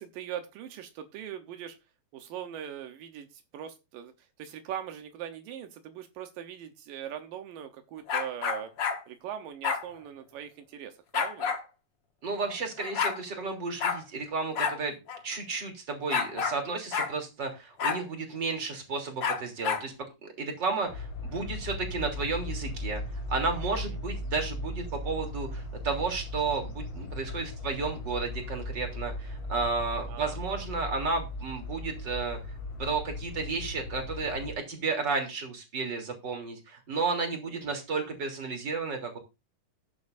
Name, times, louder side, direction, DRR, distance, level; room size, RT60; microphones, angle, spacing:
voice 1, 0.0-1.8 2.1-8.7 9.1-11.6 23.9-24.0 30.1-30.6 37.5-37.8, right 10 dB, 85° right, 7 dB, 2.8 m, -41 dB
sound 1, 8.1-9.0 9.6-9.8 11.1-11.6 12.5-12.6 12.8-13.2 13.8-14.0 14.6-14.8 15.1-15.2 16.1-16.6 16.9-17.1 17.8-18.0 19.2-19.9, left 6 dB, 50° left, 1.4 m, -29 dB
voice 2, 12.2-15.0 15.2-19.9 20.2-23.0 23.3-32.4 32.8-39.2, right 4 dB, 35° right, 3 dB, 3.7 m, -32 dB
sound 2, 20.9-34.5, left 1 dB, 75° left, 4.1 m, -37 dB
15.0 x 10.5 x 2.7 m, 0.26 s
omnidirectional pair, 3.8 m